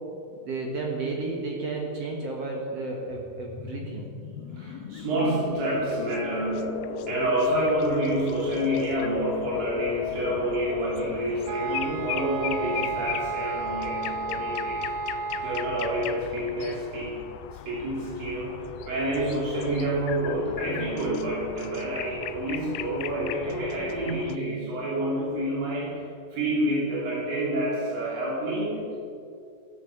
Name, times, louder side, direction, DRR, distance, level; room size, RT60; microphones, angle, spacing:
voice 1, 0.4-4.1, right 3 dB, 55° right, 0 dB, 2.1 m, -32 dB
sound 1, 3.1-13.6, left 6 dB, 70° left, 1.7 m, -36 dB
voice 2, 4.5-14.9 15.4-17.2 17.5-26.0 26.3-29.0, right 1 dB, 90° right, -6 dB, 4.6 m, -28 dB
sound 2, 4.9-24.4, left 14 dB, 90° left, 1.7 m, -39 dB
sound 3, 11.5-16.2, right 4 dB, 75° right, 1.5 m, -32 dB
13.5 x 10.5 x 7.1 m, 2.5 s
omnidirectional pair, 3.9 m